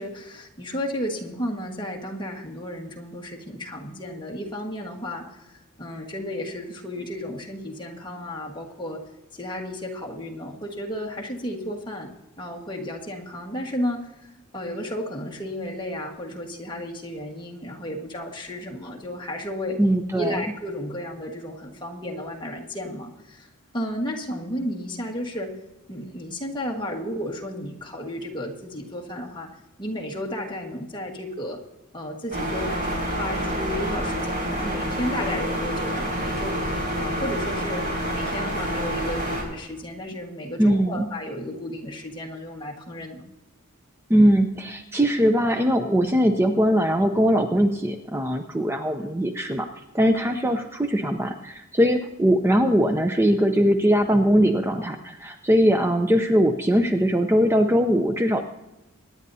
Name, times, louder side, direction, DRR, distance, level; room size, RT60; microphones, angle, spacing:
voice 1, 0.0-9.0 9.3-12.1 12.4-14.1 14.5-19.8 20.1-23.5 23.7-25.5 25.9-29.5 29.8-31.6 31.9-36.7 37.0-37.8 38.1-43.2, left 1 dB, 20° left, -1 dB, 1.6 m, -33 dB
voice 2, 19.8-20.4 40.6-41.1 44.1-49.7 49.9-58.4, equal, 10° right, 5 dB, 0.5 m, -21 dB
sound 1, 32.3-39.4, equal, 40° right, 4.1 m, -28 dB
23.5 x 10.0 x 2.7 m, 0.99 s
head